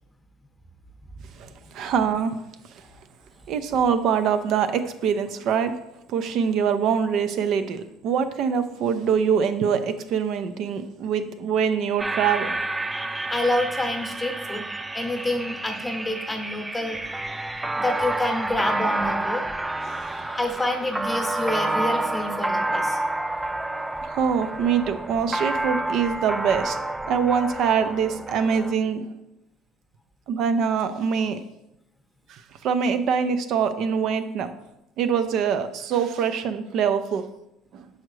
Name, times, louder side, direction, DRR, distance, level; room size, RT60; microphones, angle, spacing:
voice 1, 1.7-2.4 3.5-5.7 6.1-12.5 19.9-20.4 24.0-26.8 27.1-29.1 30.3-31.4 32.6-34.5 35.0-37.2, right 7 dB, 60° right, 10 dB, 0.5 m, -24 dB
sound 1, 12.0-28.7, right 2 dB, 10° right, 0.3 m, -29 dB
voice 2, 13.3-14.6 14.9-17.0 17.7-19.4 20.4-23.0, left 1 dB, 10° left, 4 dB, 0.9 m, -28 dB
6.4 x 4.9 x 3.1 m, 0.87 s
supercardioid pair, 100°, 0 cm